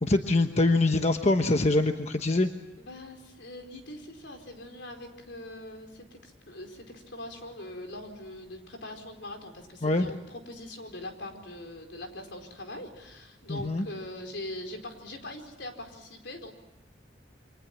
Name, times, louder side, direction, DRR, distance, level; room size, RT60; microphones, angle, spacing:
voice 1, 0.0-2.5 9.8-10.1 13.5-13.9, left 2 dB, 35° left, 6 dB, 1.1 m, -24 dB
voice 2, 2.8-16.5, left 1 dB, 70° left, 4 dB, 4.6 m, -42 dB
29.0 x 24.5 x 7.3 m, 0.97 s
head